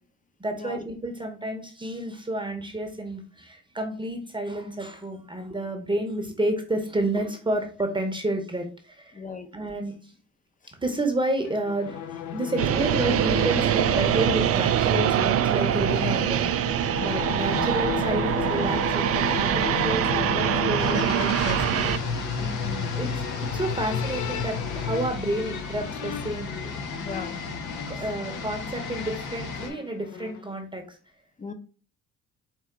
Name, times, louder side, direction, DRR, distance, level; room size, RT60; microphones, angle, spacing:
voice 1, 0.4-9.2 9.5-10.1 10.8-21.6 22.9-23.1 23.4-26.8 27.9-31.0, right 1 dB, 15° right, 4 dB, 0.8 m, -30 dB
voice 2, 9.1-9.5 22.4-23.0 27.0-27.4 31.4-31.5, left 4 dB, 25° left, 8 dB, 0.7 m, -37 dB
sound 1, 11.4-30.5, left 8 dB, 70° left, 0.5 m, -34 dB
sound 2, 12.6-22.0, right 10 dB, 50° right, 0.4 m, -24 dB
sound 3, 20.8-29.7, left 3 dB, 85° left, 0.9 m, -35 dB
4.4 x 2.5 x 3.7 m, 0.40 s
cardioid pair, 90°, 30 cm